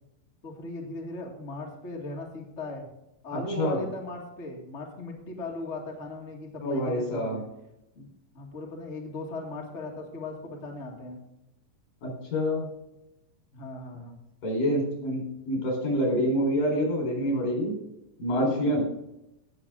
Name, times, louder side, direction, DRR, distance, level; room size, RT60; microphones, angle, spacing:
voice 1, 0.4-2.9 3.2-7.4 8.0-8.1 8.3-11.2 13.5-14.2, left 2 dB, 25° left, -1 dB, 1.9 m, -38 dB
voice 2, 3.3-3.8 6.6-7.4 12.0-12.7 14.4-17.8 18.2-18.8, equal, 75° left, 0 dB, 6.0 m, -27 dB
17.5 x 7.1 x 3.8 m, 0.87 s
omnidirectional pair, 3.9 m